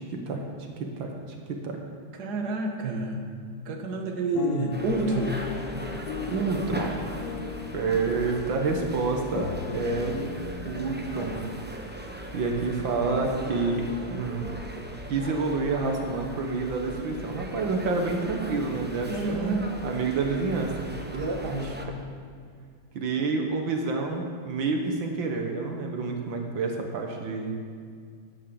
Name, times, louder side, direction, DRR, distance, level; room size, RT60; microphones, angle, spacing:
voice 1, 0.8-1.8 6.3-7.1 7.7-10.3 10.7-11.4 12.3-14.5 15.1-20.7 23.0-27.6, right 3 dB, 70° right, 2 dB, 2.0 m, -28 dB
voice 2, 2.2-3.2 3.7-5.5 19.1-19.8 21.1-21.7, right 2 dB, 55° right, 2 dB, 1.8 m, -29 dB
sound 1, 4.3-12.5 13.1-13.2 13.4-13.7, left 7 dB, 75° left, 0.8 m, -39 dB
sound 2, 4.7-21.9, equal, 15° right, 0.4 m, -39 dB
12.0 x 9.4 x 6.9 m, 2.2 s
omnidirectional pair, 2.2 m